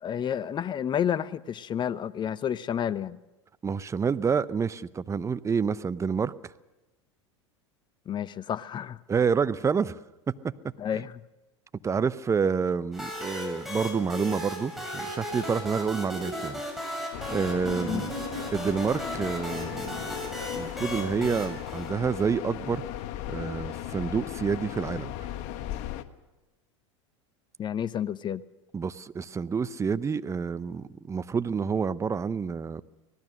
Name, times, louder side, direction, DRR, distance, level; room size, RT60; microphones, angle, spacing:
voice 1, 0.0-3.2 8.1-9.0 10.8-11.1 17.8-18.0 27.6-28.4, left 9 dB, 30° left, 0.8 m, -30 dB
voice 2, 3.6-6.3 9.1-10.0 10.3-10.5 11.8-16.6 17.3-18.1 18.5-20.0 20.6-22.8 23.3-25.1 28.7-32.8, right 6 dB, 20° right, 0.7 m, -28 dB
sound 1, 12.9-22.6, left 1 dB, ahead, 7.3 m, -36 dB
sound 2, 17.1-26.0, left 12 dB, 50° left, 1.3 m, -37 dB
25.0 x 18.5 x 6.4 m
hypercardioid pair, 85°, 16 cm